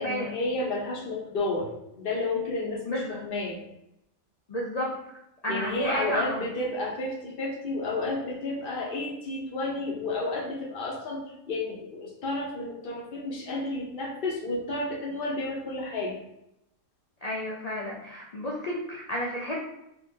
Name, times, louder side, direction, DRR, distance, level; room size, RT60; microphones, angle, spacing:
voice 1, 0.0-1.7 2.0-3.6 5.5-16.2, left 2 dB, 50° left, -1 dB, 0.7 m, -31 dB
voice 2, 2.9-3.2 4.5-4.9 5.4-6.5 17.2-19.7, equal, 85° left, -3 dB, 0.3 m, -31 dB
3.8 x 2.9 x 2.7 m, 0.83 s
omnidirectional pair, 1.5 m